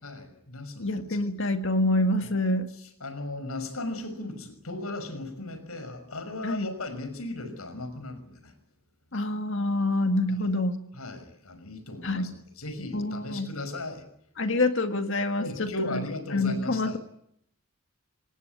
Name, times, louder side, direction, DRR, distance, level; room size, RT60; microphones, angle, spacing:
voice 1, 0.0-1.2 2.2-2.3 2.8-8.5 10.9-14.0 15.4-17.0, left 2 dB, 85° left, 10 dB, 5.9 m, -37 dB
voice 2, 0.8-2.7 6.4-6.7 9.1-10.8 12.0-12.4 12.9-13.5 14.4-16.0 16.3-17.0, left 2 dB, 60° left, 7 dB, 2.0 m, -26 dB
26.0 x 19.5 x 9.7 m, 0.73 s
head